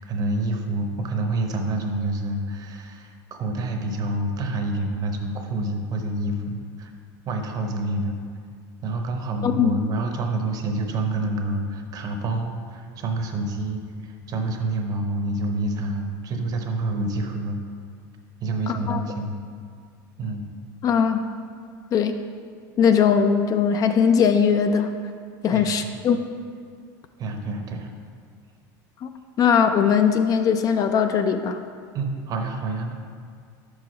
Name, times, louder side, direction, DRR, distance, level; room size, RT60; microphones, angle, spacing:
voice 1, 0.0-3.1 3.4-6.9 7.3-8.1 8.8-17.6 18.4-19.4 20.2-20.5 25.5-26.2 27.2-27.9 31.9-32.9, right 2 dB, 40° right, 4 dB, 0.8 m, -28 dB
voice 2, 18.7-19.0 20.8-21.2 21.9-22.2 22.8-24.9 25.4-26.2 29.0-29.1 29.4-31.6, left 7 dB, 35° left, 8 dB, 0.3 m, -20 dB
5.6 x 4.8 x 5.1 m, 2.1 s
supercardioid pair, 125°, 10 cm